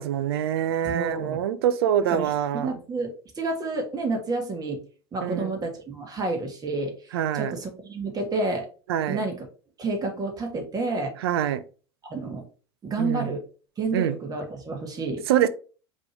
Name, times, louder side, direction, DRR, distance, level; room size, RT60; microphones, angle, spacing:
voice 1, 0.0-2.7 5.2-5.5 7.1-7.5 8.9-9.2 11.2-11.6 13.0-13.3 13.9-14.1 15.3-15.5, right 10 dB, 70° right, 15 dB, 0.5 m, -25 dB
voice 2, 0.9-1.4 2.1-4.8 5.1-6.9 7.3-8.7 9.1-9.5 9.8-11.1 12.1-12.4 12.8-13.4 13.8-15.2, right 3 dB, 30° right, 3 dB, 1.7 m, -30 dB
5.1 x 3.1 x 3.2 m, 0.37 s
hypercardioid pair, 75°, 14 cm